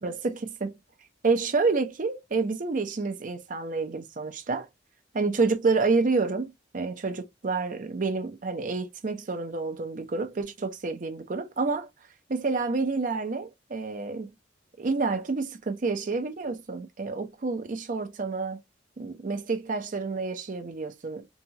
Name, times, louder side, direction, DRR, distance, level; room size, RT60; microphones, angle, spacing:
voice 1, 0.0-0.8 1.2-4.7 5.1-11.9 12.3-14.3 14.8-18.6 19.0-21.3, right 4 dB, 45° right, 0.5 m, -29 dB
2.8 x 2.3 x 2.7 m
head